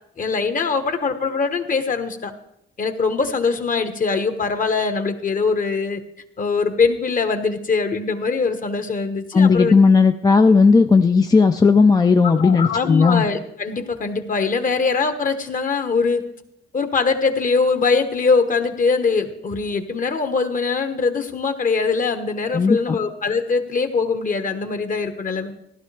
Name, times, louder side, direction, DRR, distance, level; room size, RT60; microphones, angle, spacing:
voice 1, 0.2-2.3 2.8-6.0 6.4-9.7 12.2-16.2 16.7-25.5, left 4 dB, 40° left, 8 dB, 1.3 m, -22 dB
voice 2, 9.3-13.3 22.5-23.0, left 4 dB, 20° left, 6 dB, 0.4 m, -15 dB
15.5 x 11.5 x 3.4 m, 0.79 s
cardioid pair, 90°, 20 cm